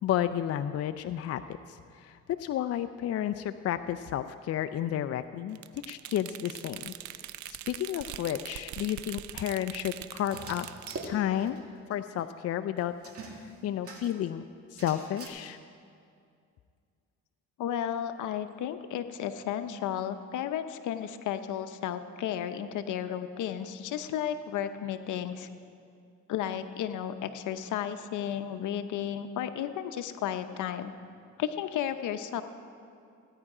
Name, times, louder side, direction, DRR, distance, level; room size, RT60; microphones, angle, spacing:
voice 1, 0.0-10.7 11.0-11.6 11.9-12.9 13.2-14.4 14.7-15.6, left 11 dB, 55° left, 10 dB, 0.4 m, -32 dB
sound 1, 5.5-11.1, right 13 dB, 70° right, 0.5 m, -43 dB
sound 2, 10.2-11.6 11.9-12.0 12.2-12.3 13.0-14.2 14.8-15.3, right 3 dB, 50° right, 2.0 m, -43 dB
voice 2, 17.6-25.5 26.3-30.9 31.4-32.4, left 10 dB, 80° left, 9 dB, 0.8 m, -33 dB
16.0 x 9.8 x 4.9 m, 2.3 s
cardioid pair, 90°, 30 cm